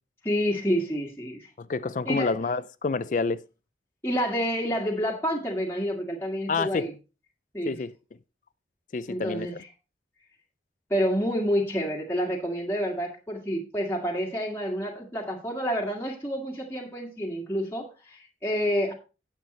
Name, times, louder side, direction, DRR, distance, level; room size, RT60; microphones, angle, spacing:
voice 1, 0.2-1.5 2.0-2.3 4.0-6.9 7.5-7.7 9.1-9.5 10.9-18.9, equal, 15° left, 1.7 m, -28 dB
voice 2, 1.6-3.4 6.5-6.9 7.7-7.9 8.9-9.5, left 4 dB, 45° left, 0.4 m, -28 dB
9.3 x 8.3 x 4.2 m
head